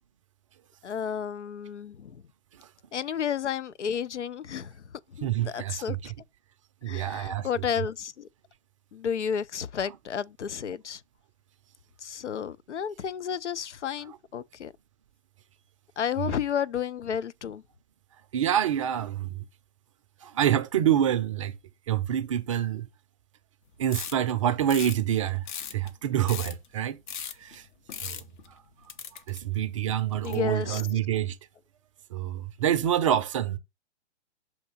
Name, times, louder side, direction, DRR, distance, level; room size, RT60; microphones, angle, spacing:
voice 1, 0.8-2.2 2.9-4.7 5.1-6.0 6.9-8.3 8.9-11.0 12.0-14.7 16.0-17.6 30.2-30.9, left 8 dB, 80° left, 0.5 m, -32 dB
voice 2, 5.2-6.1 6.8-7.5 16.2-16.3 18.3-19.4 20.2-21.6 21.9-22.9 23.8-25.4 25.7-27.0 27.4-27.7 28.0-28.2 29.3-31.4 32.1-33.6, right 10 dB, 30° right, 0.5 m, -27 dB
sound 1, 23.9-24.3 24.7-25.0 25.3-26.7 27.1-27.6 27.9-28.5 28.9-29.6 30.2-31.2, left 8 dB, 45° left, 0.7 m, -38 dB
6.5 x 2.9 x 5.4 m
figure-of-eight pair, 120°, 34 cm